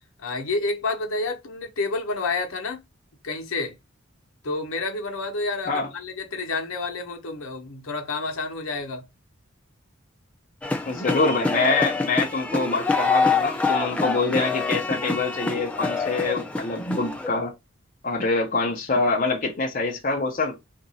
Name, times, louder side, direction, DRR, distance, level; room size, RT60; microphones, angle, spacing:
voice 1, 0.2-2.8 3.2-3.8 4.4-9.0, left 3 dB, 75° left, 0.9 m, -29 dB
sound 1, 10.6-17.3, left 3 dB, 5° left, 0.4 m, -26 dB
voice 2, 10.9-17.5 18.0-20.6, left 3 dB, 40° left, 0.7 m, -25 dB
2.9 x 2.6 x 4.0 m
head